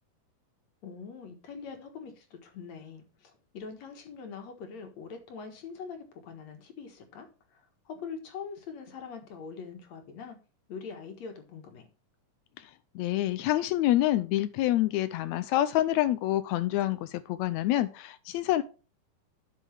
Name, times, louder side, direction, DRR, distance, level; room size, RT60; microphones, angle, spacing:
voice 1, 0.8-10.4 10.7-11.9, left 5 dB, 60° left, 5 dB, 2.7 m, -43 dB
voice 2, 12.9-18.6, left 14 dB, 90° left, 12 dB, 1.6 m, -27 dB
11.0 x 6.4 x 3.4 m, 0.33 s
omnidirectional pair, 3.8 m